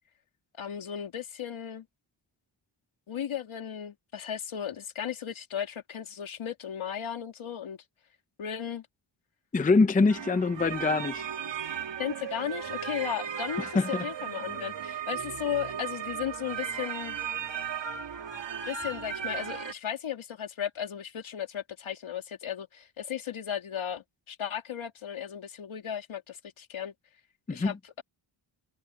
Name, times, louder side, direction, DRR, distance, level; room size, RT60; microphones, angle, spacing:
voice 1, 0.6-1.9 3.1-7.8 8.4-8.9 12.0-17.2 18.7-26.9 27.5-28.0, left 9 dB, 70° left, 2.9 m, -35 dB
voice 2, 9.5-11.3 13.6-14.1 27.5-27.7, left 3 dB, 15° left, 0.6 m, -24 dB
sound 1, 10.1-19.7, right 8 dB, 60° right, 2.7 m, -36 dB
wide cardioid pair, 140°, 49 cm